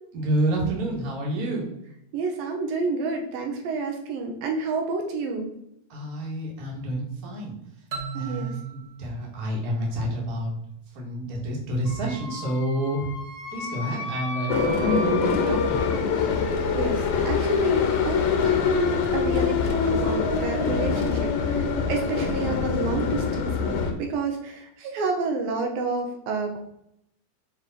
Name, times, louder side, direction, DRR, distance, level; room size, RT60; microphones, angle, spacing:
voice 1, 0.1-1.7 5.9-7.5 8.1-10.5 10.9-13.1 13.5-15.8, right 1 dB, 35° right, -2 dB, 1.7 m, -28 dB
voice 2, 2.1-5.5 8.1-8.5 16.7-26.6, right 3 dB, 75° right, 2 dB, 2.6 m, -29 dB
sound 1, 7.9-10.6, right 5 dB, 60° right, 1.2 m, -38 dB
Wind instrument woodwind instrument, 11.8-16.0, left 2 dB, 50° left, 1.8 m, -36 dB
sound 2, 14.5-23.9, left 6 dB, 85° left, 2.8 m, -24 dB
7.2 x 4.7 x 4.2 m, 0.77 s
omnidirectional pair, 4.3 m